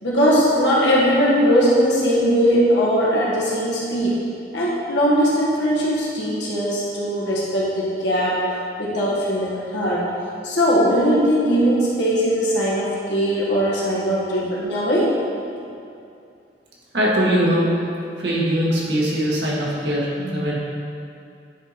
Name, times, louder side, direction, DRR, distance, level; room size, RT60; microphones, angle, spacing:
voice 1, 0.0-4.1 4.5-8.5 8.8-10.0 10.4-15.1, equal, 75° left, -7 dB, 1.6 m, -20 dB
voice 2, 16.9-17.7 18.2-20.6, equal, 65° right, -5 dB, 1.7 m, -21 dB
10.0 x 4.6 x 4.3 m, 2.5 s
head